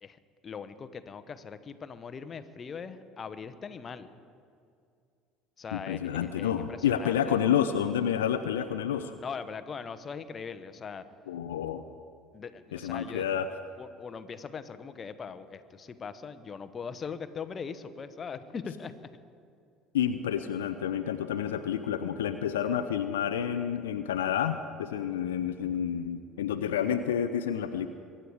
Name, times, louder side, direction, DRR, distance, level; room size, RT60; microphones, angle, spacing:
voice 1, 0.0-4.1 5.6-7.4 9.2-11.0 12.3-13.4 13.8-18.9, left 6 dB, 35° left, 11 dB, 1.0 m, -41 dB
voice 2, 5.7-9.2 11.3-11.8 12.7-13.5 19.9-27.9, left 9 dB, 80° left, 10 dB, 0.5 m, -29 dB
23.0 x 10.0 x 4.8 m, 2.4 s
hypercardioid pair, 65°, 0 cm